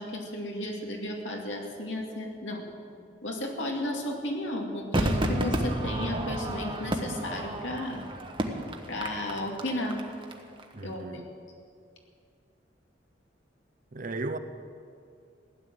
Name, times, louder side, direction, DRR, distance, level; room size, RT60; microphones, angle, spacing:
voice 1, 0.0-2.6 3.2-8.0 8.9-10.0 10.8-11.2, left 1 dB, 80° left, 2.5 m, -33 dB
Crowd / Fireworks, 4.9-10.3 10.6-10.7, right 1 dB, 30° right, 1.2 m, -31 dB
voice 2, 10.7-11.3 13.9-14.4, right 2 dB, 45° right, 0.8 m, -35 dB
16.0 x 11.0 x 7.8 m
head